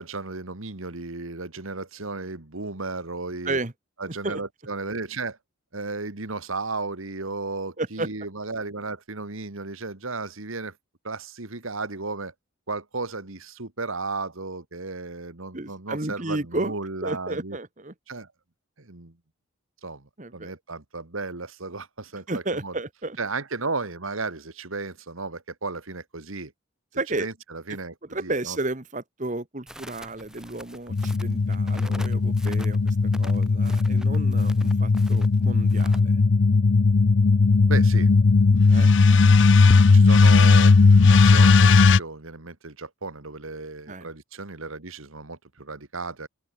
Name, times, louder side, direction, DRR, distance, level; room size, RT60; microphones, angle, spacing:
voice 1, 0.0-3.6 4.0-5.4 5.7-10.8 11.0-12.3 12.7-17.6 18.1-18.3 18.8-19.2 19.8-22.8 23.2-26.5 27.2-28.6 37.7-38.1 39.9-40.7 41.1-46.3, right 3 dB, 75° right, 2.0 m, -34 dB
voice 2, 4.0-4.4 7.8-8.1 15.5-16.8 17.0-17.9 20.2-20.5 22.3-23.2 27.0-27.3 27.7-27.8 28.1-36.2 38.7-38.9 43.9-44.1, right 2 dB, 35° right, 1.4 m, -32 dB
Crackle, 29.7-36.0, equal, 5° right, 3.9 m, -45 dB
sound 1, 30.9-42.0, left 4 dB, 55° left, 0.5 m, -17 dB
open air
head